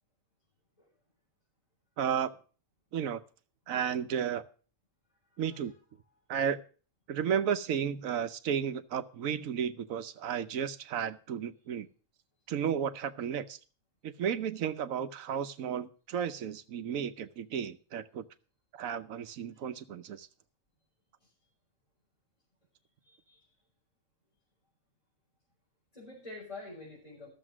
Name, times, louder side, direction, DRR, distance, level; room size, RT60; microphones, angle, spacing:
voice 1, 2.0-2.3 2.9-3.2 3.7-4.4 5.4-5.7 6.3-6.6 7.1-11.9 12.5-13.6 14.0-18.2 18.7-20.3, right 8 dB, 85° right, 1.2 m, -33 dB
voice 2, 5.3-5.7 21.2-21.3 23.0-23.4 25.9-27.3, left 3 dB, 25° left, 5.2 m, -47 dB
13.0 x 7.3 x 6.0 m
omnidirectional pair, 1.4 m